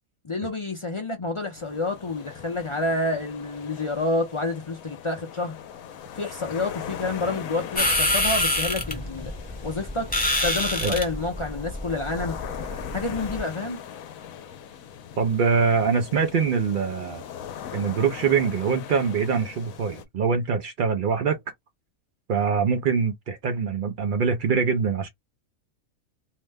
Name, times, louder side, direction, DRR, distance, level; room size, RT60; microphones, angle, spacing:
voice 1, 0.2-5.6 6.2-9.3 9.6-10.1 10.4-12.4 12.9-13.8, left 2 dB, 50° left, 0.3 m, -28 dB
sound 1, 1.6-20.0, left 9 dB, 80° left, 1.0 m, -40 dB
sound 2, 7.8-13.4, left 1 dB, 10° left, 0.7 m, -27 dB
voice 2, 15.2-17.2 17.7-21.4 22.3-25.1, right 6 dB, 90° right, 0.4 m, -24 dB
2.7 x 2.1 x 3.3 m
omnidirectional pair, 1.5 m